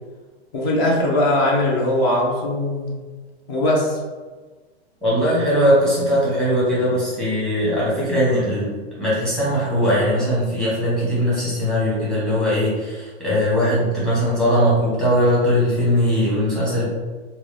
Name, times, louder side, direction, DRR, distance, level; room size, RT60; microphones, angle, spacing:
voice 1, 0.5-2.9 3.5-4.0, left 1 dB, 20° left, -3 dB, 0.5 m, -20 dB
voice 2, 5.0-16.9, equal, ahead, -8 dB, 1.0 m, -20 dB
3.9 x 2.3 x 3.1 m, 1.3 s
hypercardioid pair, 165°, 32 cm